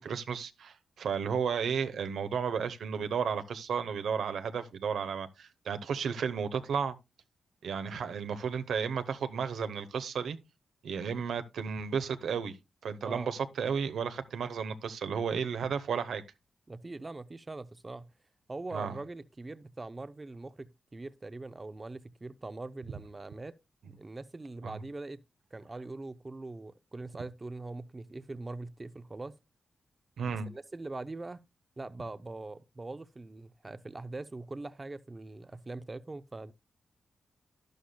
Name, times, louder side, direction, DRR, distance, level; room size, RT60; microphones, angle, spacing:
voice 1, 0.0-6.9 7.6-10.4 10.8-12.6 12.8-16.2 18.7-19.0 24.6-24.7 30.2-30.5, right 6 dB, 80° right, 0.8 m, -33 dB
voice 2, 16.7-18.1 18.5-23.5 23.8-25.2 25.5-29.4 30.3-31.4 31.8-36.5, right 2 dB, 25° right, 0.5 m, -42 dB
11.5 x 11.5 x 2.2 m
cardioid pair, 85°, 0 cm